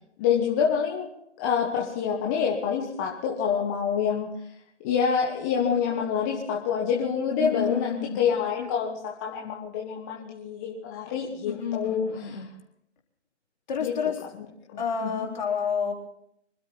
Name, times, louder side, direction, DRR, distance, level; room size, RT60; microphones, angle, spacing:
voice 1, 0.2-1.1 1.4-4.3 4.8-12.4 13.8-13.9 14.3-14.5 14.7-15.3, left 7 dB, 15° left, -2 dB, 1.4 m, -27 dB
voice 2, 7.4-8.2 11.5-12.5 13.7-14.2 14.8-15.9, left 6 dB, 40° left, 0 dB, 3.9 m, -29 dB
26.0 x 12.5 x 4.2 m, 0.73 s
figure-of-eight pair, 150°, 35 cm